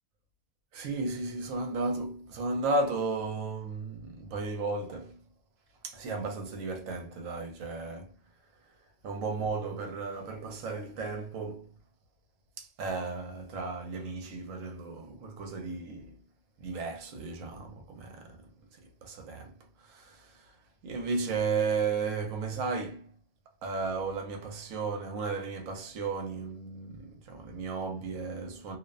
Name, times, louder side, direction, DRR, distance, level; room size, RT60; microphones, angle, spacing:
voice 1, 0.7-5.2 5.8-8.2 9.0-11.7 12.6-16.2 16.6-18.5 18.7-20.5 20.8-23.1 23.6-28.8, right 3 dB, 75° right, 1.0 m, -34 dB
2.6 x 2.1 x 2.3 m
omnidirectional pair, 1.4 m